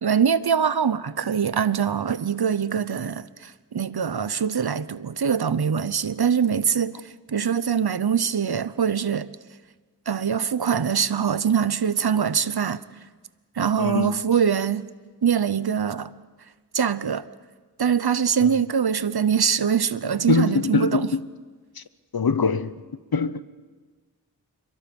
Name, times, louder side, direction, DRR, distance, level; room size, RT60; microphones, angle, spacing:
voice 1, 0.0-9.3 10.1-12.8 13.6-14.9 15.2-16.1 16.7-17.3 17.8-21.1, right 7 dB, 75° right, 0.8 m, -23 dB
voice 2, 13.8-14.3 18.4-18.5 20.3-21.3 21.8-21.9 22.1-22.7 23.1-23.4, left 5 dB, 65° left, 0.9 m, -23 dB
28.0 x 23.0 x 5.4 m
wide cardioid pair, 45°, 39 cm